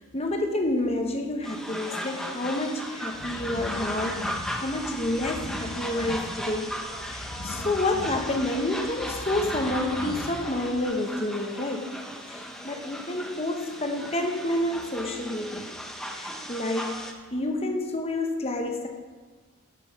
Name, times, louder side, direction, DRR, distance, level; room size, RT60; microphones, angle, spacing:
voice 1, 0.0-6.7 7.0-11.9 12.3-15.8 16.1-17.0 17.3-18.9, left 1 dB, 25° left, 3 dB, 1.0 m, -29 dB
sound 1, 1.4-17.1, equal, ahead, 0.7 m, -36 dB
sound 2, 3.1-10.8, left 1 dB, 70° left, 1.1 m, -40 dB
12.5 x 6.2 x 5.8 m, 1.4 s
head